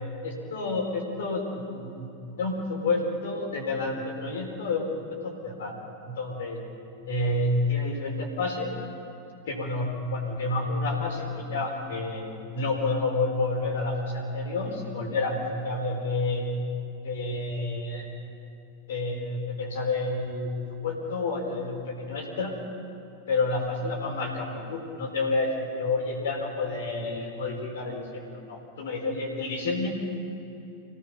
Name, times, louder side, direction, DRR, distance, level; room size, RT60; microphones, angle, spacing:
voice 1, 0.2-2.1 2.4-4.9 5.2-5.7 6.0-6.6 7.1-8.7 9.5-16.5 17.0-18.1 18.9-20.5 20.8-22.5 23.3-29.9, left 2 dB, 60° left, 0 dB, 4.7 m, -29 dB
26.0 x 18.0 x 5.8 m, 2.9 s
figure-of-eight pair, 90°, 0 cm